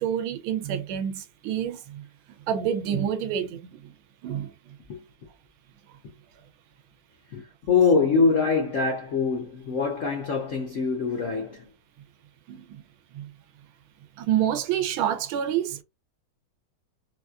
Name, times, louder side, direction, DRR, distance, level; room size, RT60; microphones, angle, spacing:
voice 1, 0.0-2.0 2.5-3.8 4.2-4.5 12.5-12.8 13.1-13.3 14.2-15.8, right 9 dB, 80° right, 1.4 m, -28 dB
voice 2, 7.3-11.7, left 5 dB, 70° left, 0.7 m, -24 dB
4.1 x 2.3 x 2.3 m
omnidirectional pair, 2.3 m